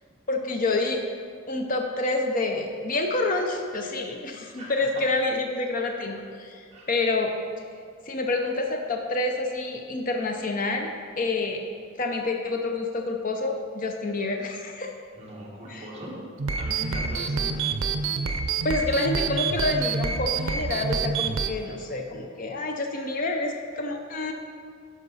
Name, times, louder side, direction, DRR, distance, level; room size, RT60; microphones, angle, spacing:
voice 1, 0.3-1.0 1.5-7.3 8.1-11.6 12.0-15.0 15.7-15.9 18.6-24.3, left 2 dB, 45° left, 3 dB, 0.6 m, -28 dB
voice 2, 15.2-16.2 16.6-17.6, right 1 dB, 30° right, -5 dB, 1.7 m, -40 dB
sound 1, 16.4-21.5, right 5 dB, 85° right, 0.6 m, -27 dB
10.0 x 5.9 x 4.1 m, 2.2 s
head